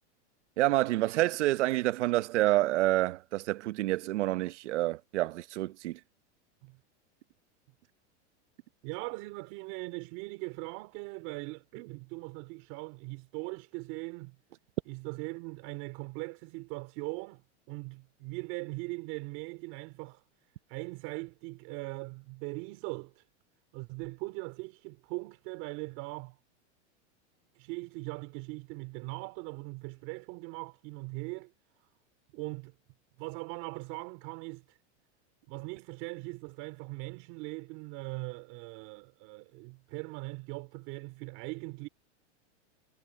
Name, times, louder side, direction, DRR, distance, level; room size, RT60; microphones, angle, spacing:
voice 1, 0.6-6.0, right 16 dB, 80° right, 1.0 m, -28 dB
voice 2, 8.8-14.4 14.9-20.2 20.7-23.2 23.7-26.4 27.5-31.5 32.3-32.7 33.2-34.8 35.5-41.9, right 26 dB, 45° right, 4.0 m, -40 dB
supercardioid pair, 160°, 35 cm